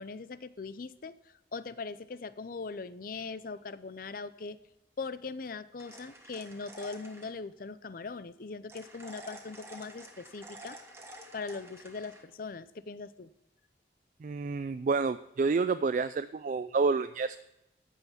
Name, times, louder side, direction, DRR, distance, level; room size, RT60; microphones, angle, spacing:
voice 1, 0.0-4.6 5.0-10.8 11.3-13.3, left 4 dB, 50° left, 15 dB, 0.5 m, -40 dB
sound 1, 5.8-7.3 8.7-12.2, right 1 dB, 15° right, 1.5 m, -50 dB
voice 2, 14.2-17.4, right 4 dB, 45° right, 12 dB, 0.3 m, -29 dB
14.0 x 5.7 x 7.2 m, 0.89 s
head